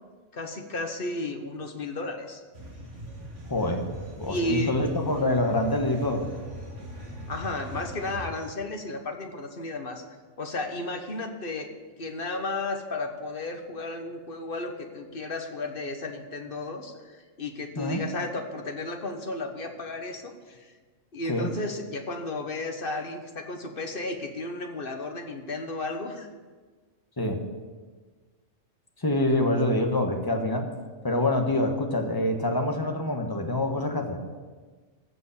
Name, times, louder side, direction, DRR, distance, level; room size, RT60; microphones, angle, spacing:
voice 1, 0.3-2.4 4.3-4.7 7.3-10.0 10.4-11.7 12.0-20.7 21.1-26.3, left 2 dB, 50° left, 5 dB, 1.4 m, -33 dB
sound 1, 2.5-8.3, right 1 dB, 75° right, 2.6 m, -40 dB
voice 2, 3.5-3.8 4.2-6.3 17.8-18.0 21.3-21.5 27.2-27.4 29.0-30.7 31.0-34.2, left 1 dB, 20° left, 3 dB, 1.3 m, -26 dB
15.0 x 5.2 x 8.4 m, 1.4 s
omnidirectional pair, 1.2 m